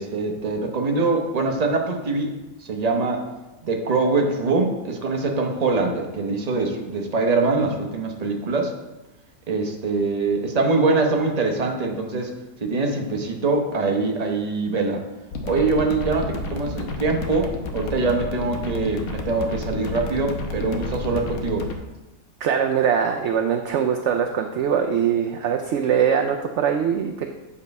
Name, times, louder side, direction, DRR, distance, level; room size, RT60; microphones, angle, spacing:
voice 1, 0.0-2.3 2.6-3.2 3.6-8.7 9.5-12.3 12.6-15.0 15.4-21.7, right 3 dB, 30° right, 2 dB, 0.9 m, -23 dB
sound 1, 15.3-21.7, left 3 dB, 75° left, 1.4 m, -31 dB
voice 2, 22.4-27.3, right 8 dB, 65° right, 4 dB, 0.8 m, -22 dB
9.3 x 4.1 x 5.3 m, 1.1 s
omnidirectional pair, 1.5 m